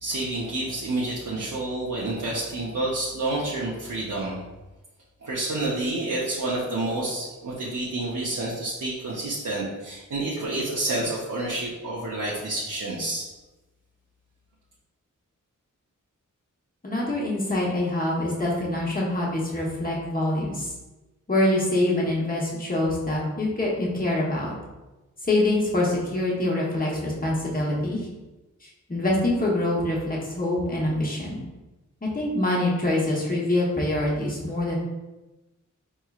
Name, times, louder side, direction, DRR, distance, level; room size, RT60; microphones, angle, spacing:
voice 1, 0.0-4.4 5.2-13.3, right 2 dB, 75° right, -6 dB, 0.7 m, -29 dB
voice 2, 16.8-20.7 21.3-24.5 25.2-28.1 28.6-31.4 32.0-34.8, left 1 dB, 25° left, -4 dB, 1.0 m, -25 dB
4.5 x 3.1 x 2.3 m, 1.1 s
wide cardioid pair, 85°, 31 cm